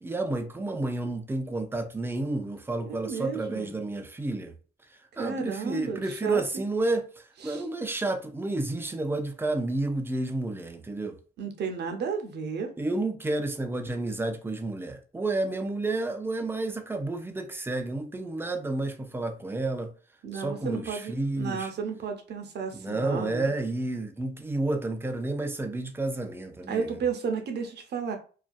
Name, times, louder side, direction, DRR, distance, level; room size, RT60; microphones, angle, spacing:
voice 1, 0.0-4.5 5.2-7.0 7.4-11.2 12.8-19.9 20.3-21.7 22.7-26.9, right 2 dB, 10° right, 0.4 m, -30 dB
voice 2, 2.8-3.8 5.2-6.6 7.4-7.6 11.4-12.7 20.2-23.5 26.7-28.2, right 6 dB, 60° right, 0.7 m, -33 dB
2.6 x 2.2 x 2.2 m
cardioid pair, 90°, 20 cm